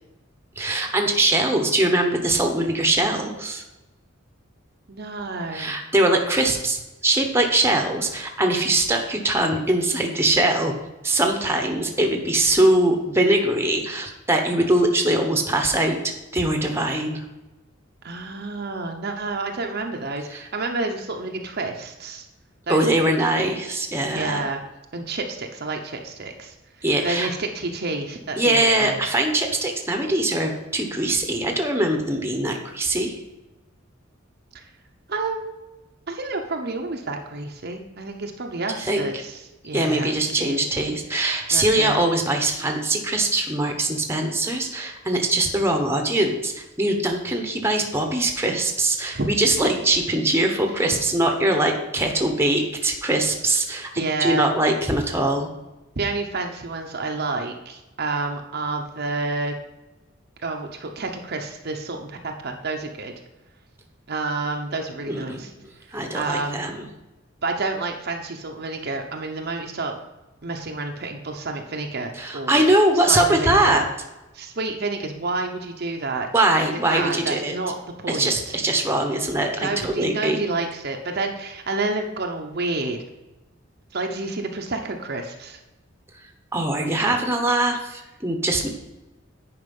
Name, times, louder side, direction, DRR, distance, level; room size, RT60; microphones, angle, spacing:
voice 1, 0.6-3.6 5.5-10.7 11.0-16.0 16.3-17.2 20.3-20.4 22.7-24.5 26.8-27.3 28.4-33.2 38.8-39.1 39.7-55.5 65.1-65.4 65.9-66.9 72.2-73.8 76.3-77.6 78.1-80.4 86.5-88.7, right 1 dB, 10° right, 3 dB, 1.0 m, -22 dB
voice 2, 4.9-5.8 18.0-22.3 22.7-23.1 24.1-24.6 24.9-26.5 27.0-29.0 34.5-34.6 35.1-35.5 36.1-40.6 41.5-42.0 49.1-49.3 54.0-54.5 56.0-59.5 60.4-63.1 64.1-65.5 65.9-66.6 67.4-69.9 70.4-72.6 72.9-73.9 74.3-76.3 76.7-78.5 79.6-83.0 83.9-85.6 88.6-88.7, right 3 dB, 50° right, 3 dB, 0.8 m, -29 dB
9.7 x 5.0 x 5.4 m, 1.1 s
head